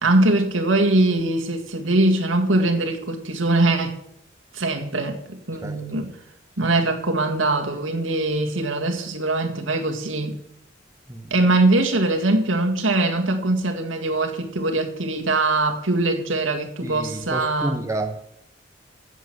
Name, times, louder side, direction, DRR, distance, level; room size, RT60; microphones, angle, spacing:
voice 1, 0.0-4.0 4.5-6.1 6.6-10.4 11.3-17.9, right 2 dB, 80° right, 2.0 m, -22 dB
voice 2, 16.8-18.2, right 2 dB, 15° right, 0.9 m, -30 dB
10.5 x 8.2 x 7.9 m
head